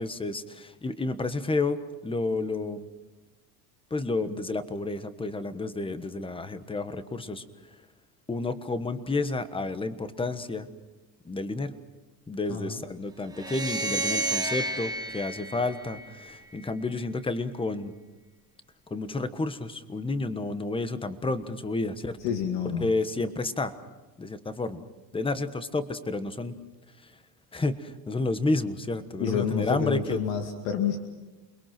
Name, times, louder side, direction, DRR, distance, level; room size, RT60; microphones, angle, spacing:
voice 1, 0.0-2.9 3.9-7.4 8.3-10.7 11.2-11.7 12.3-17.9 18.9-22.2 22.8-23.7 24.2-24.8 25.1-26.5 27.0-27.1 27.5-30.2, left 3 dB, 10° left, 11 dB, 1.3 m, -30 dB
voice 2, 12.5-12.8 22.2-22.9 29.2-31.0, left 7 dB, 75° left, 4 dB, 2.3 m, -29 dB
sound 1, 13.3-16.6, right 2 dB, 10° right, 1.3 m, -31 dB
29.0 x 21.5 x 6.0 m, 1.2 s
supercardioid pair, 120°, 44 cm